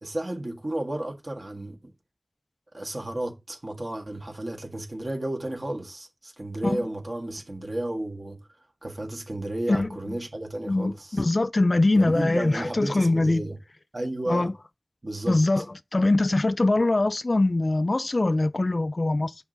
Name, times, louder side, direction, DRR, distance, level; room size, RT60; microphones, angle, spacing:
voice 1, 0.0-1.9 2.7-8.4 8.8-11.2 11.9-13.6 13.9-14.5 15.0-15.4, right 1 dB, 55° right, 1.6 m, -32 dB
voice 2, 10.7-13.4 14.3-14.5 15.3-15.6 15.9-19.3, left 2 dB, 60° left, 0.3 m, -22 dB
6.0 x 5.5 x 4.0 m
wide cardioid pair, 40°, 0 cm